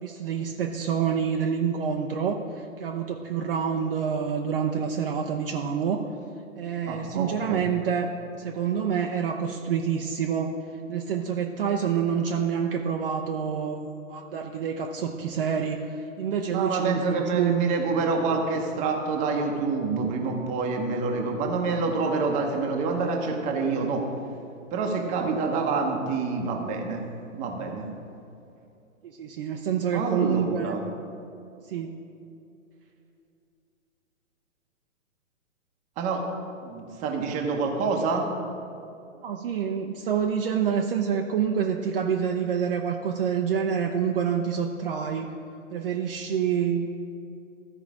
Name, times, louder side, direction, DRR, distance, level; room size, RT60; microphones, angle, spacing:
voice 1, 0.0-6.0 6.6-8.1 8.4-10.5 10.9-17.6 25.0-25.1 29.0-30.7 31.7-31.9 39.2-45.3 45.7-46.9, right 7 dB, 45° right, 2 dB, 0.6 m, -27 dB
voice 2, 6.9-7.7 16.5-24.1 24.7-27.0 27.3-27.9 29.9-30.8 36.0-36.2 36.6-38.3, right 4 dB, 20° right, 2 dB, 0.9 m, -27 dB
13.5 x 4.9 x 4.8 m, 2.7 s
hypercardioid pair, 130°, 41 cm